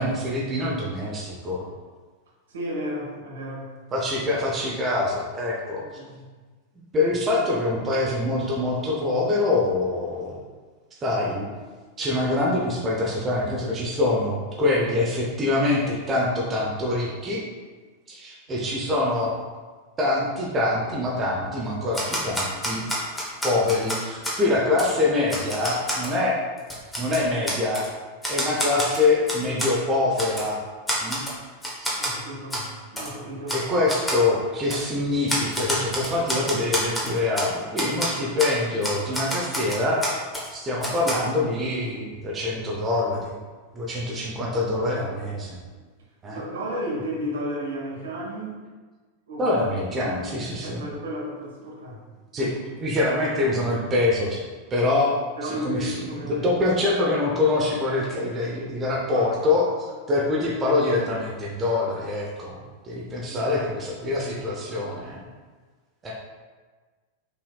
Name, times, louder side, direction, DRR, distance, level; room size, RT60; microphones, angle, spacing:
voice 1, 0.0-1.7 3.9-5.8 6.9-10.4 11.0-11.5 12.0-17.4 18.1-19.3 20.0-22.9 23.4-26.4 27.0-27.9 28.3-30.6 31.0-31.3 31.8-31.9 33.5-40.0 40.5-43.4 43.7-45.6 46.2-46.4 49.4-50.9 52.3-52.5 52.8-54.4 54.7-55.1 55.4-56.0 56.2-59.7 60.1-62.6 62.8-65.2 66.0-66.1, left 2 dB, 20° right, -4 dB, 0.8 m, -25 dB
voice 2, 2.5-3.7 5.8-6.2 18.5-18.7 32.0-33.6 46.3-48.6 49.3-49.6 50.6-52.0 52.4-52.5 55.4-56.5 59.1-59.5 63.2-63.6, equal, 65° right, -4 dB, 1.2 m, -33 dB
Typewriter, 21.9-24.4 24.8-24.9 25.3-26.1 26.6-27.9 28.2-29.7 30.2-30.5 30.9-31.4 31.6-32.1 32.5-32.7 33.0-33.1 33.5-33.6 33.9-34.2 34.7-34.8 35.3-37.5 37.8-38.1 38.4-38.5 38.8-40.5 40.8-41.1, equal, 10° left, 1.0 m, -28 dB
5.6 x 3.3 x 2.3 m, 1.4 s
figure-of-eight pair, 90°, 0 cm